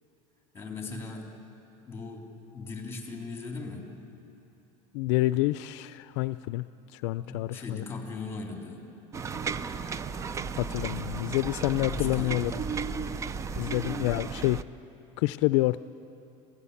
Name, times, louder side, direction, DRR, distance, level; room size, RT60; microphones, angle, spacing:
voice 1, 0.5-1.3 1.9-2.3 2.5-3.9 7.2-8.8 11.9-12.6, left 4 dB, 15° left, 1 dB, 3.6 m, -39 dB
voice 2, 4.9-6.7 6.9-7.8 10.6-12.5 13.6-14.6 15.2-15.8, left 18 dB, 75° left, 14 dB, 0.5 m, -28 dB
sound 1, 9.1-14.6, right 5 dB, 20° right, 0.6 m, -34 dB
27.0 x 16.5 x 8.4 m, 2.9 s
cardioid pair, 145°, 15 cm